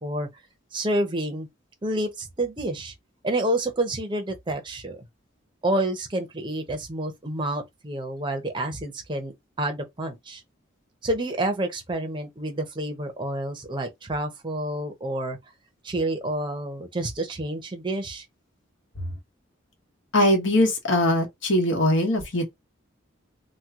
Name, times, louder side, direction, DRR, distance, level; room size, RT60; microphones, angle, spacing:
voice 1, 0.7-1.5 1.8-2.9 3.2-5.1 5.6-10.4 11.0-15.4 15.8-18.2, right 1 dB, 25° right, 0.7 m, -29 dB
voice 2, 20.1-22.5, left 1 dB, 75° left, 1.2 m, -21 dB
2.9 x 2.2 x 3.5 m
head